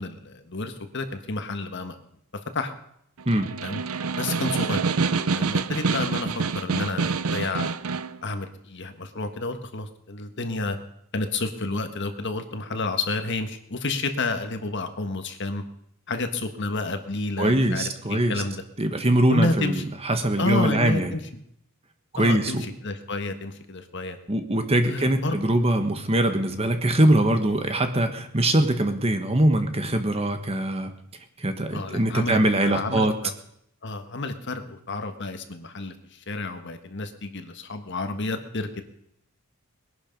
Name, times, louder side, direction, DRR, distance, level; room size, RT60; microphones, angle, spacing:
voice 1, 0.0-1.9 2.5-2.7 3.6-3.8 4.2-4.8 5.3-7.7 8.2-10.8 11.1-15.6 16.1-18.6 19.3-19.8 20.4-21.2 22.1-24.2 24.8-25.4 31.7-33.3 33.8-38.8, left 2 dB, 55° left, 7 dB, 1.5 m, -30 dB
Snare drum, 3.2-8.2, right 4 dB, 75° right, 0.7 m, -26 dB
voice 2, 17.4-18.3 18.8-21.1 22.1-22.6 24.3-30.9 31.4-33.1, right 1 dB, 25° right, 7 dB, 1.4 m, -22 dB
21.0 x 11.5 x 5.3 m, 0.75 s
head